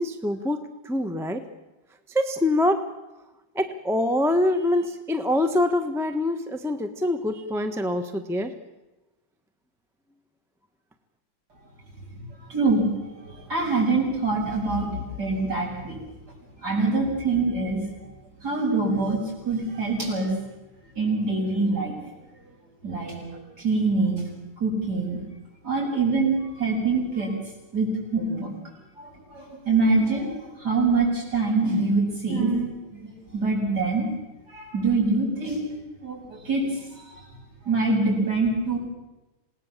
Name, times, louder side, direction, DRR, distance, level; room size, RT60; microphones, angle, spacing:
voice 1, 0.0-1.4 2.1-2.8 3.5-8.5, left 1 dB, ahead, 7 dB, 1.0 m, -25 dB
voice 2, 12.1-16.0 16.6-18.1 18.4-20.3 20.9-21.9 22.8-24.2 24.6-25.2 25.6-27.3 27.7-28.5 29.0-34.1 34.5-35.6 36.0-37.2 37.6-38.8, right 3 dB, 50° right, -1 dB, 8.4 m, -25 dB
27.5 x 18.5 x 7.5 m, 1.0 s
omnidirectional pair, 2.3 m